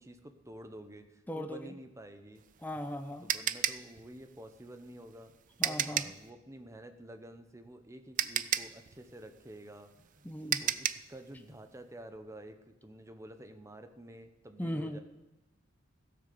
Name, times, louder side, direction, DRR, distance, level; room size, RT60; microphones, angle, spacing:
voice 1, 0.0-2.4 3.2-5.3 5.7-15.0, right 1 dB, 15° right, 7 dB, 1.0 m, -50 dB
voice 2, 1.3-1.7 2.6-3.3 5.6-6.1 10.2-10.6 14.6-15.0, equal, 10° left, 7 dB, 0.7 m, -38 dB
sound 1, 2.4-6.2 7.7-7.8 8.2-11.1, right 10 dB, 40° right, 0.4 m, -33 dB
16.5 x 6.9 x 6.9 m, 0.99 s
head